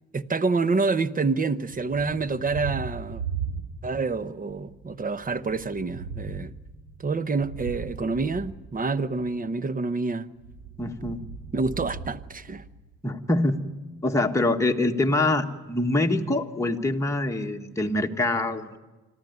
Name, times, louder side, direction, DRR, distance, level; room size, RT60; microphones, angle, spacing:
voice 1, 0.1-3.2 3.8-6.5 7.0-10.3 11.5-12.6, right 4 dB, 30° right, 0.9 m, -27 dB
Thunder, 1.7-4.1 4.4-9.3 10.3-13.0, right 5 dB, 75° right, 4.7 m, -38 dB
voice 2, 10.8-11.2 13.0-13.6 14.0-18.8, left 2 dB, 10° left, 1.6 m, -25 dB
26.0 x 14.0 x 9.5 m
cardioid pair, 90°, 30 cm